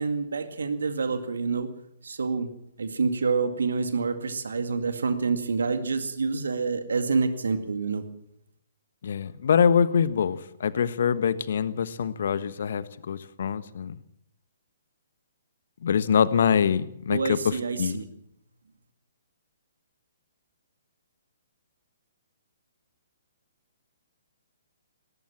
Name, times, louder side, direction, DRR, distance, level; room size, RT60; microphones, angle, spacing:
voice 1, 0.0-1.7 2.0-2.5 2.8-8.0 17.1-18.1, right 4 dB, 65° right, 2.2 m, -27 dB
voice 2, 9.0-13.9 15.8-18.0, left 7 dB, 55° left, 1.3 m, -24 dB
19.5 x 18.5 x 7.5 m
figure-of-eight pair, 125°, 0 cm